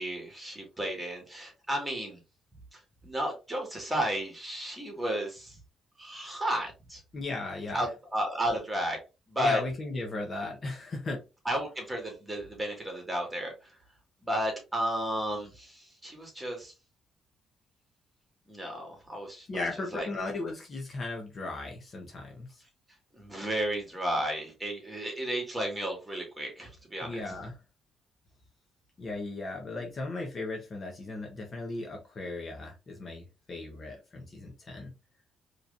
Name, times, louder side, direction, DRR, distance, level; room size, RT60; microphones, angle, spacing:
voice 1, 0.0-2.2 2.7-5.6 6.0-7.0 7.7-9.0 9.3-9.6 11.4-13.8 14.2-16.7 18.5-19.5 19.9-20.1 23.1-27.4, equal, 10° right, 1 dB, 2.2 m, -33 dB
voice 2, 7.1-7.9 9.4-11.2 19.5-22.6 27.0-27.5 29.0-34.9, left 2 dB, 40° left, 1 dB, 1.2 m, -36 dB
4.7 x 3.3 x 2.7 m, 0.28 s
cardioid pair, 110°, 0 cm